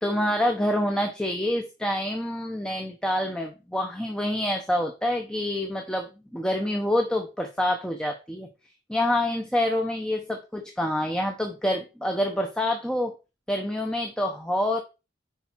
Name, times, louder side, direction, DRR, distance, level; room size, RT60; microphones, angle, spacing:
voice 1, 0.0-8.5 8.9-13.1 13.5-14.8, left 1 dB, 5° left, 3 dB, 0.8 m, -27 dB
9.8 x 4.7 x 4.5 m, 0.29 s
head